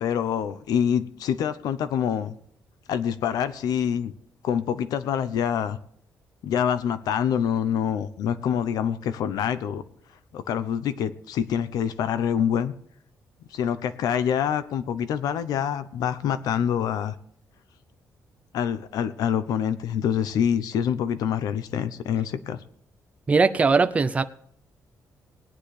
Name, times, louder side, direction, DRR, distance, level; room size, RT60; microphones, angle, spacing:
voice 1, 0.0-2.4 2.9-4.1 4.4-5.8 6.4-9.8 10.3-12.7 13.5-17.1 18.5-22.6, left 8 dB, 85° left, 0.9 m, -26 dB
voice 2, 23.3-24.2, right 4 dB, 20° right, 0.6 m, -20 dB
19.5 x 9.8 x 3.4 m
cardioid pair, 155°, 6 cm